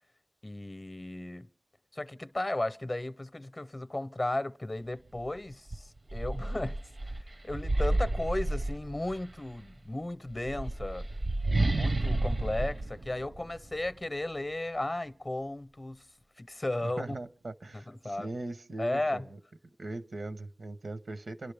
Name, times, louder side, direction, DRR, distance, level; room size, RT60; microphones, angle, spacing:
voice 1, 0.4-1.5 1.9-11.1 11.7-16.1 16.4-17.2 17.7-18.4 18.8-19.3, left 1 dB, 35° left, 0.7 m, -35 dB
sound 1, 5.1-5.3 5.7-9.3 10.3-13.9, right 2 dB, 60° right, 0.6 m, -31 dB
voice 2, 16.8-19.4 19.8-21.5, right 2 dB, 85° right, 0.9 m, -40 dB
29.0 x 11.5 x 3.4 m
wide cardioid pair, 70°, 0 cm